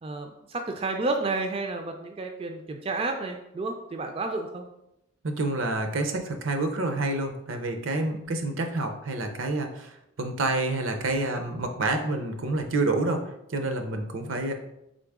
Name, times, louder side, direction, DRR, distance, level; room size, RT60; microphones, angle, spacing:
voice 1, 0.0-4.6 8.2-8.4 14.2-14.3, right 3 dB, 30° right, 4 dB, 0.3 m, -31 dB
voice 2, 5.2-13.2 13.5-14.5, right 2 dB, 75° right, 6 dB, 0.6 m, -28 dB
3.8 x 3.8 x 3.5 m, 0.83 s
head